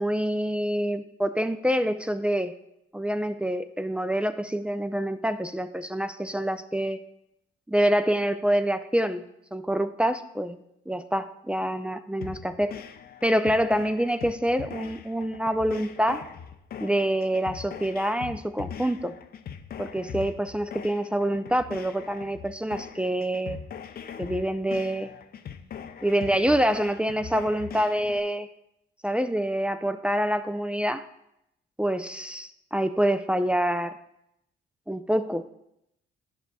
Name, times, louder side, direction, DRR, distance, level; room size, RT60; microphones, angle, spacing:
voice 1, 0.0-2.5 2.9-7.0 7.7-9.2 9.5-10.6 10.9-12.7 13.2-16.2 16.8-19.1 19.8-23.6 24.2-25.1 26.0-28.5 29.0-31.0 31.8-34.0 34.9-35.4, right 1 dB, 5° right, 10 dB, 0.3 m, -26 dB
sound 1, 12.2-28.2, left 7 dB, 50° left, 0.5 m, -41 dB
11.0 x 5.9 x 2.3 m, 0.82 s
cardioid pair, 90°, 20 cm